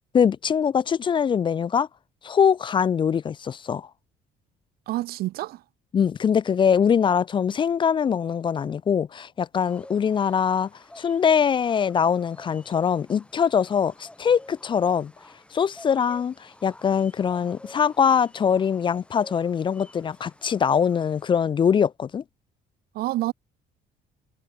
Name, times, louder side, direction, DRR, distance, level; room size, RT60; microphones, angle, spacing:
voice 1, 0.1-1.9 2.2-3.9 5.9-10.7 11.0-15.1 15.5-22.2, left 7 dB, 30° left, 0.3 m, -22 dB
voice 2, 4.9-5.6 22.9-23.3, right 17 dB, 65° right, 0.4 m, -28 dB
sound 1, 9.6-21.3, left 1 dB, 5° left, 2.5 m, -50 dB
cardioid pair, 110°, 17 cm